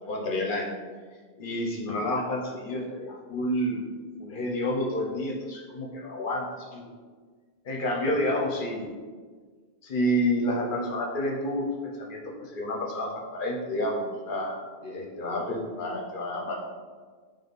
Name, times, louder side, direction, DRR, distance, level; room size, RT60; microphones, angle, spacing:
voice 1, 0.0-0.7 1.4-3.8 4.2-6.9 7.6-8.9 9.8-11.6 12.0-16.6, equal, 55° left, -1 dB, 0.9 m, -29 dB
4.1 x 3.5 x 3.5 m, 1.5 s
omnidirectional pair, 1.1 m